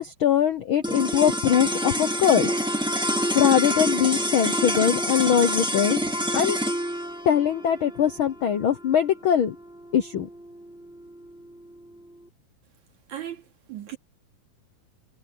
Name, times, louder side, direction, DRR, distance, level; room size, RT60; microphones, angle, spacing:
voice 1, 0.0-2.5 3.3-6.0 6.3-6.6 7.2-9.5 9.9-10.3, left 9 dB, 70° left, 1.3 m, -22 dB
sound 1, 0.8-11.3, equal, ahead, 1.3 m, -27 dB
voice 2, 13.1-14.0, right 11 dB, 70° right, 4.0 m, -37 dB
omnidirectional pair, 3.5 m